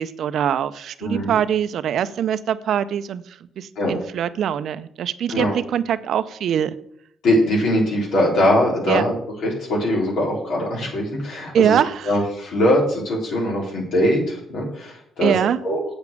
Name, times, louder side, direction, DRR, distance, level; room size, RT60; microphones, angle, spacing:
voice 1, 0.0-3.2 3.6-6.8 8.9-9.0 11.5-12.1 15.2-15.6, right 9 dB, 70° right, 13 dB, 0.6 m, -22 dB
voice 2, 1.0-1.3 3.8-3.9 5.3-5.5 7.2-9.1 9.4-11.8 12.0-15.3 15.6-15.8, left 1 dB, 75° left, -2 dB, 4.0 m, -21 dB
8.1 x 7.1 x 6.8 m, 0.72 s
cardioid pair, 90°, 0 cm